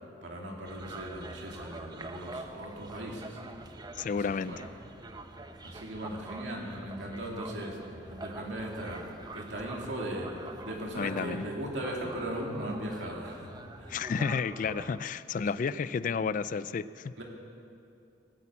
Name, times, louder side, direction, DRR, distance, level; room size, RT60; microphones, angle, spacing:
voice 1, 0.2-3.4 4.2-4.6 5.6-7.8 8.1-9.0 9.3-13.5 13.8-14.0 15.3-15.4 17.2-17.3, right 1 dB, 70° right, -1 dB, 2.7 m, -38 dB
sound 1, 0.7-15.0, right 2 dB, 25° right, 0.7 m, -45 dB
voice 2, 4.0-4.6 11.0-11.4 13.9-17.2, left 5 dB, 45° left, 16 dB, 0.3 m, -31 dB
17.0 x 8.5 x 8.4 m, 2.5 s
head